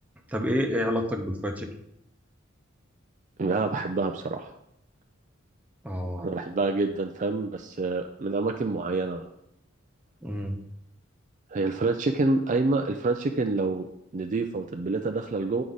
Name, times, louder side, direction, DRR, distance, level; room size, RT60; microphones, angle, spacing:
voice 1, 0.3-1.7 5.8-6.3 10.2-10.6, equal, 5° right, 2 dB, 0.8 m, -28 dB
voice 2, 3.4-4.5 6.2-9.2 11.5-13.9 14.1-15.6, right 3 dB, 40° right, 5 dB, 0.4 m, -27 dB
9.6 x 4.8 x 4.0 m, 0.78 s
head